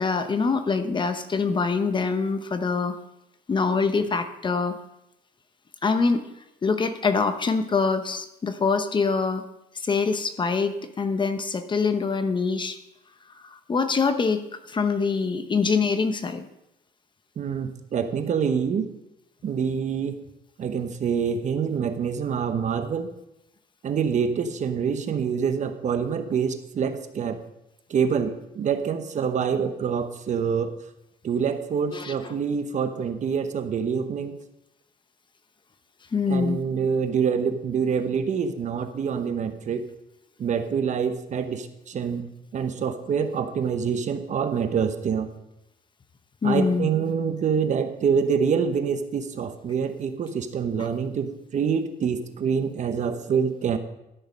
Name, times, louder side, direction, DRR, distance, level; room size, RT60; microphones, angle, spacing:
voice 1, 0.0-3.0 3.5-4.7 5.8-6.2 6.6-9.4 9.7-12.8 13.4-16.4 31.9-32.4 36.1-36.6 46.4-46.9, left 4 dB, 30° left, 9 dB, 0.9 m, -24 dB
voice 2, 17.4-18.9 19.4-20.2 20.6-23.1 23.8-27.4 27.9-30.7 31.2-34.4 36.3-39.9 40.4-45.3 46.4-53.8, right 6 dB, 45° right, 9 dB, 1.0 m, -26 dB
12.5 x 6.4 x 5.2 m, 0.87 s
cardioid pair, 110°, 17 cm